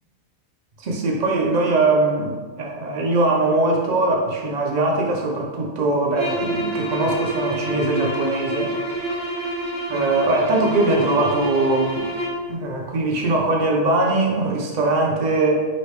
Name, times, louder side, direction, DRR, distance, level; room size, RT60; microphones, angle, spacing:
voice 1, 0.8-8.7 9.9-12.1 12.5-15.7, right 2 dB, 80° right, 0 dB, 0.3 m, -21 dB
sound 1, 6.1-12.5, right 1 dB, 35° right, 0.9 m, -27 dB
5.1 x 3.2 x 3.2 m, 1.4 s
omnidirectional pair, 1.5 m